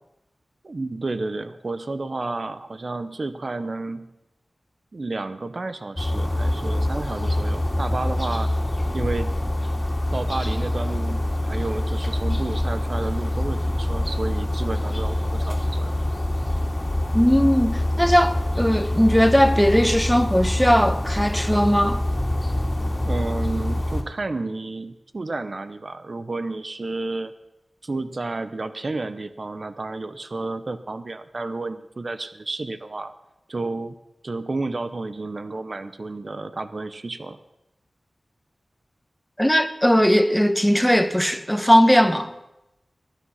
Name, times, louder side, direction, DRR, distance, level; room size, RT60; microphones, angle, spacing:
voice 1, 0.6-4.1 4.9-8.5 8.9-9.3 10.1-16.0 23.0-27.3 27.8-33.1 33.5-33.9 34.2-37.4, right 3 dB, 55° right, 0.8 m, -31 dB
sound 1, 6.0-24.0, left 1 dB, 30° left, 2.6 m, -25 dB
voice 2, 17.1-22.0 39.4-42.3, equal, 5° left, 1.0 m, -18 dB
19.0 x 10.0 x 5.7 m
wide cardioid pair, 60°, 0 cm